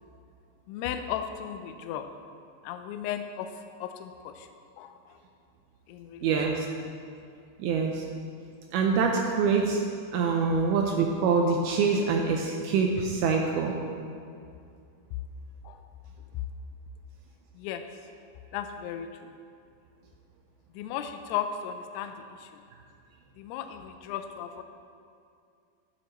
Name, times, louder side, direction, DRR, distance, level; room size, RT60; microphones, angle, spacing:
voice 1, 0.7-2.1 2.6-4.5 4.8-5.2 5.9-6.4 15.6-15.8 17.5-17.9 18.5-19.4 20.7-22.6 23.4-24.6, left 9 dB, 85° left, 7 dB, 2.3 m, -36 dB
voice 2, 6.2-6.7 7.6-8.0 8.7-9.8 10.1-13.7, right 5 dB, 85° right, 1 dB, 2.2 m, -25 dB
12.0 x 10.0 x 3.0 m, 2.4 s
omnidirectional pair, 5.1 m